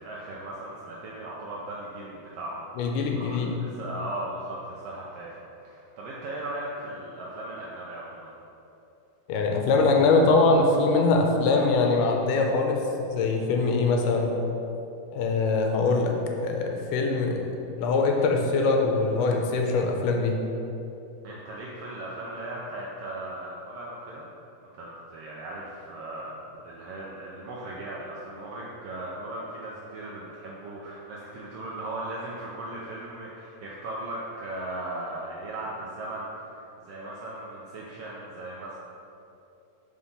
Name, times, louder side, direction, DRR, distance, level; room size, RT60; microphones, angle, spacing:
voice 1, 0.0-8.3 21.2-24.3 24.6-26.4 26.6-38.8, right 1 dB, 90° right, -5 dB, 1.3 m, -37 dB
voice 2, 2.8-3.5 9.3-12.8 13.1-14.3 15.1-16.1 16.4-17.5 17.8-20.4, left 3 dB, 80° left, 2 dB, 2.3 m, -23 dB
5.7 x 4.9 x 5.5 m, 2.8 s
omnidirectional pair, 3.7 m